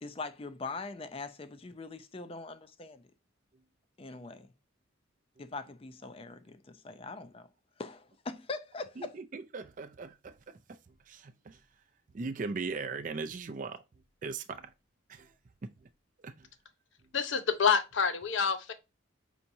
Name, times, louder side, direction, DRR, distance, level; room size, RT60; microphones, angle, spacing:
voice 1, 0.0-3.0 4.0-4.5 5.4-7.5 7.8-9.2, left 3 dB, 30° left, 0.4 m, -42 dB
voice 2, 9.0-10.3 11.1-11.6 12.1-13.8 14.2-14.7 15.1-15.3 16.2-16.3, right 4 dB, 40° right, 0.4 m, -38 dB
voice 3, 17.1-18.7, left 6 dB, 70° left, 0.7 m, -27 dB
5.6 x 2.9 x 2.6 m
head